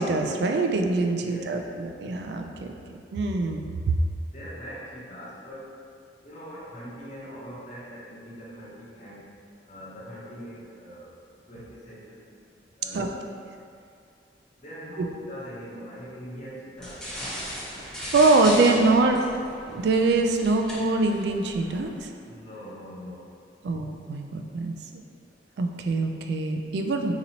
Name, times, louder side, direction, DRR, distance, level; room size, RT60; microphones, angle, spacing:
voice 1, 0.0-2.7 3.1-4.0 12.9-13.1 15.0-15.1 17.8-19.2 19.7-22.1 23.6-24.8 25.6-27.1, right 3 dB, 70° right, 4 dB, 0.3 m, -24 dB
voice 2, 1.2-1.6 4.3-5.7 6.2-9.3 9.7-11.1 11.5-12.3 12.8-13.2 14.6-17.0 22.2-23.3, equal, 40° left, -9 dB, 0.7 m, -42 dB
sound 1, 16.8-22.1, equal, 5° left, 0.9 m, -37 dB
3.9 x 2.9 x 2.8 m, 2.3 s
head